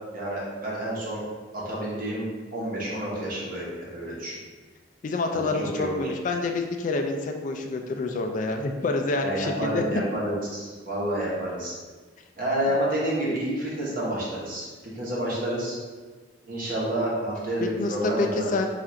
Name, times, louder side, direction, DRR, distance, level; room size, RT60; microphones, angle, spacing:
voice 1, 0.1-1.2 1.5-2.2 2.5-4.4 5.3-6.0 9.2-11.7 12.4-14.7 14.9-15.8 16.5-18.5, right 1 dB, 50° right, -6 dB, 1.0 m, -29 dB
voice 2, 5.0-9.8 17.6-18.7, left 3 dB, 45° left, 4 dB, 0.3 m, -27 dB
3.7 x 2.5 x 4.3 m, 1.4 s
head